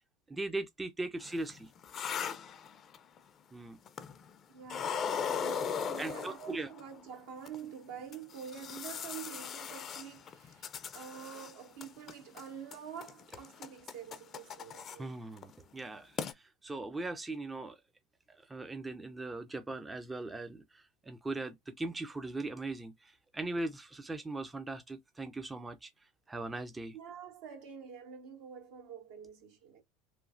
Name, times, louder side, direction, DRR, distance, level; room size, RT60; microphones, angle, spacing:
voice 1, 0.3-1.7 3.5-3.8 6.0-6.7 15.0-17.8 18.3-25.9 26.3-27.0, right 2 dB, 15° right, 0.5 m, -40 dB
sound 1, 1.3-3.2 3.9-4.3 4.7-6.8 7.4-7.6 8.1-11.5 11.8-12.4 12.7-15.0 15.4-15.5 15.9-16.0 16.2-16.3, left 7 dB, 40° left, 0.5 m, -38 dB
voice 2, 4.5-15.2 23.6-23.7 26.9-29.8, right 8 dB, 65° right, 1.0 m, -47 dB
3.0 x 2.3 x 2.5 m
hypercardioid pair, 75°, 0 cm